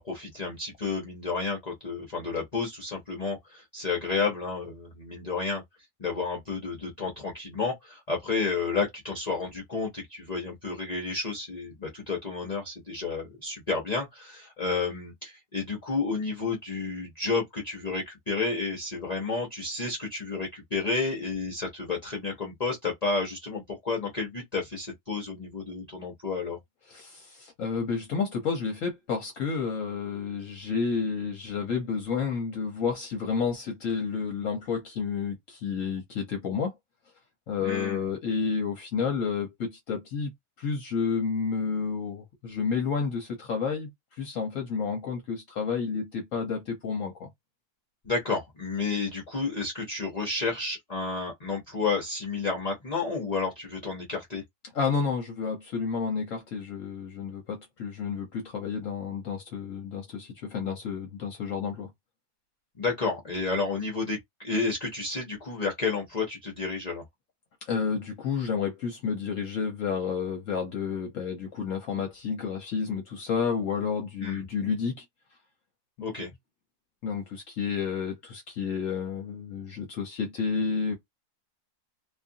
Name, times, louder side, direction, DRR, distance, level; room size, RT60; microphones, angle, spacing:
voice 1, 0.0-5.6 6.0-26.6 37.6-38.1 48.0-54.4 62.8-67.0 74.2-74.4 76.0-76.3, left 4 dB, 35° left, 0.7 m, -31 dB
voice 2, 26.9-36.7 37.5-40.3 40.6-47.3 54.7-61.9 67.7-75.0 77.0-81.0, left 5 dB, 60° left, 1.0 m, -30 dB
2.6 x 2.4 x 2.6 m
omnidirectional pair, 1.7 m